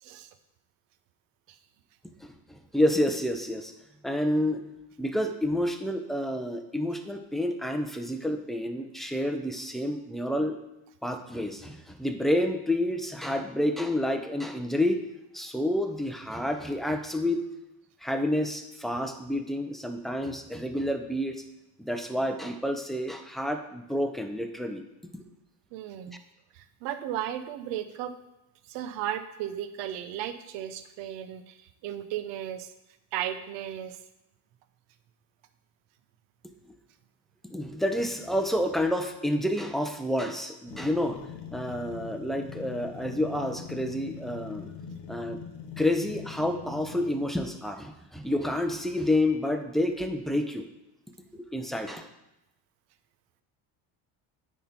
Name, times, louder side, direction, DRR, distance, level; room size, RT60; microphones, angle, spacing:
voice 1, 2.2-3.7 4.0-4.6 5.0-10.6 11.0-15.0 15.3-17.4 18.0-21.4 21.8-24.8 25.1-25.2 26.1-26.2 37.4-41.2 41.5-44.7 45.1-45.4 45.8-50.7 51.3-52.1, left 1 dB, ahead, 5 dB, 0.6 m, -29 dB
voice 2, 25.7-26.2 26.5-28.1 28.7-32.7 33.1-34.0, right 11 dB, 80° right, 11 dB, 0.8 m, -35 dB
sound 1, 40.7-47.5, left 6 dB, 75° left, 1.1 m, -42 dB
9.2 x 3.7 x 4.3 m, 0.91 s
cardioid pair, 110°, 43 cm